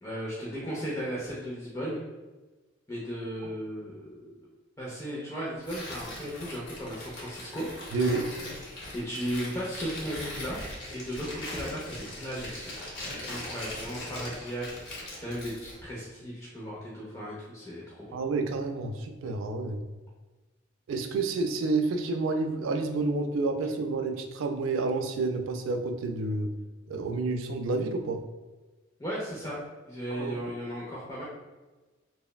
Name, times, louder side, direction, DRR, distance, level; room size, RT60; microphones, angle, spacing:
voice 1, 0.0-2.0 2.9-4.5 4.8-7.7 8.9-10.6 10.9-12.7 13.3-18.2 29.0-31.2, equal, 15° left, -7 dB, 0.4 m, -36 dB
Tearing, 5.6-15.8, left 1 dB, 65° left, 0.8 m, -40 dB
voice 2, 7.9-8.3 18.1-19.8 20.9-26.5 26.9-28.2 30.1-30.5, right 3 dB, 90° right, 6 dB, 0.3 m, -29 dB
3.0 x 2.1 x 2.2 m, 1.2 s
head